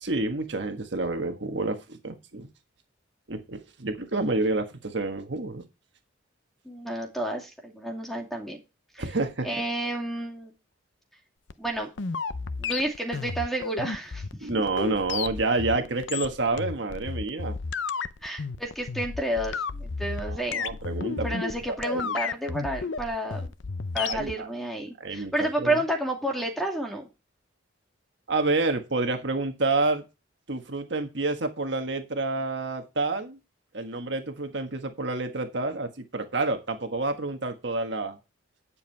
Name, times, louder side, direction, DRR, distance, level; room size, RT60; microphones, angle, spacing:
voice 1, 0.0-2.5 3.3-5.6 9.0-9.5 14.4-17.5 20.3-21.5 21.9-22.2 24.0-24.5 25.0-25.8 28.3-30.0 30.5-33.4 33.7-38.2, right 3 dB, 60° right, 6 dB, 1.5 m, -29 dB
voice 2, 6.6-8.6 8.9-9.1 9.4-10.5 11.6-11.9 12.6-14.5 18.2-20.6 21.2-23.5 23.9-27.1, right 1 dB, ahead, 2 dB, 2.4 m, -30 dB
sound 1, 11.5-24.3, left 5 dB, 65° left, 0.7 m, -33 dB
10.5 x 7.2 x 4.6 m, 0.27 s
head